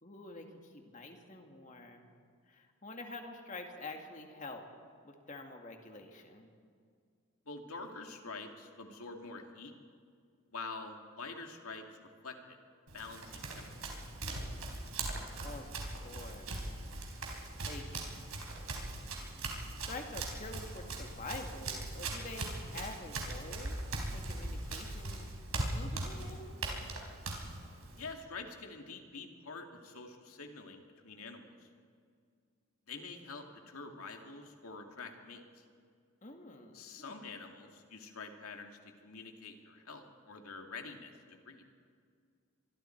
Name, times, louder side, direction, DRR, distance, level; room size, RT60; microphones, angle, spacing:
voice 1, 0.0-2.1 2.5-4.6 5.0-6.5 15.4-16.6 17.3-18.1 18.4-18.8 19.8-23.8 24.1-25.3 25.6-26.6 36.2-37.1, left 2 dB, 35° left, 3 dB, 2.0 m, -47 dB
voice 2, 7.5-9.7 10.5-11.8 12.2-12.6 12.9-13.9 28.0-31.7 32.9-35.4 36.7-41.6, left 4 dB, 85° left, 4 dB, 2.3 m, -46 dB
Run, 12.9-28.1, right 2 dB, 85° right, 3.9 m, -40 dB
25.0 x 23.5 x 4.6 m, 2.2 s
head